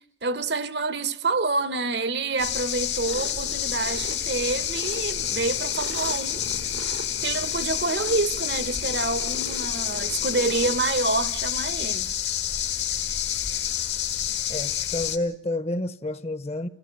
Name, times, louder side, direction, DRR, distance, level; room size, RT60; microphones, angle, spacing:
voice 1, 0.2-6.4 7.2-12.1, right 3 dB, 65° right, 1.0 m, -27 dB
sound 1, 2.4-15.2, left 10 dB, 70° left, 1.7 m, -28 dB
sound 2, 3.1-10.8, right 3 dB, 90° right, 1.6 m, -41 dB
voice 2, 14.5-16.7, left 1 dB, 35° left, 0.9 m, -29 dB
29.5 x 15.0 x 8.6 m
head